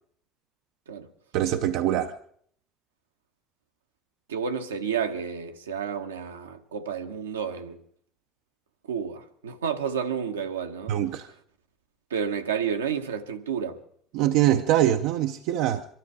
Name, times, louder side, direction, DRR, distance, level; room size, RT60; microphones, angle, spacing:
voice 1, 1.3-2.1 10.9-11.3 14.1-15.8, right 12 dB, 65° right, 0.6 m, -23 dB
voice 2, 4.3-7.8 8.9-11.0 12.1-13.8, right 7 dB, 80° right, 0.9 m, -30 dB
23.5 x 13.0 x 4.8 m
figure-of-eight pair, 60°, 0 cm